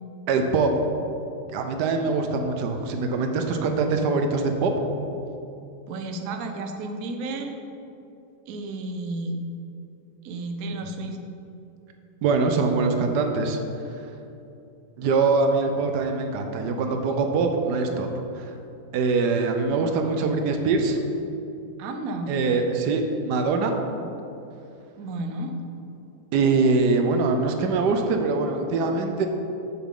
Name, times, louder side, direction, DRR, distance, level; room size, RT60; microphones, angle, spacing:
voice 1, 0.3-0.8 1.5-4.7 12.2-13.6 15.0-18.1 18.3-18.5 18.9-21.0 22.3-23.7 26.3-29.3, right 4 dB, 90° right, 5 dB, 1.3 m, -23 dB
voice 2, 5.9-7.5 8.5-9.4 10.2-11.2 21.8-22.3 25.0-25.5, right 2 dB, 65° right, 5 dB, 1.0 m, -32 dB
7.2 x 7.0 x 3.7 m, 2.8 s
omnidirectional pair, 1.8 m